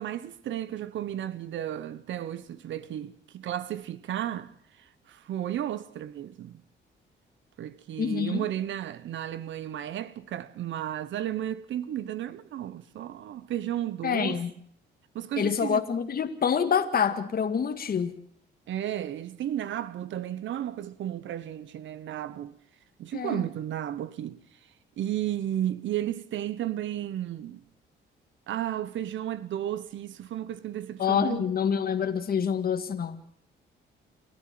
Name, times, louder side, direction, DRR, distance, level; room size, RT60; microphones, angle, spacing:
voice 1, 0.0-6.6 7.6-14.4 15.1-15.8 18.7-22.6 23.0-24.4 25.0-27.6 28.5-31.4, right 11 dB, 75° right, 1.1 m, -33 dB
voice 2, 8.0-8.4 14.0-14.5 15.4-18.1 23.1-23.4 31.0-33.2, left 7 dB, 50° left, 1.9 m, -26 dB
29.0 x 12.5 x 7.7 m
cardioid pair, 90°, 20 cm